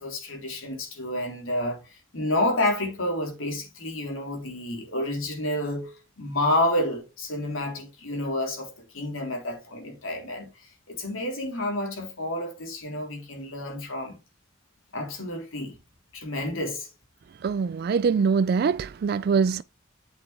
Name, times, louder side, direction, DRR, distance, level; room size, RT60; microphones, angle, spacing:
voice 1, 0.0-1.8 2.1-10.5 10.9-14.2 14.9-15.8 16.1-16.9, left 1 dB, 90° left, 3.7 m, -29 dB
voice 2, 17.4-19.6, right 5 dB, 50° right, 0.3 m, -23 dB
8.1 x 7.0 x 3.3 m
head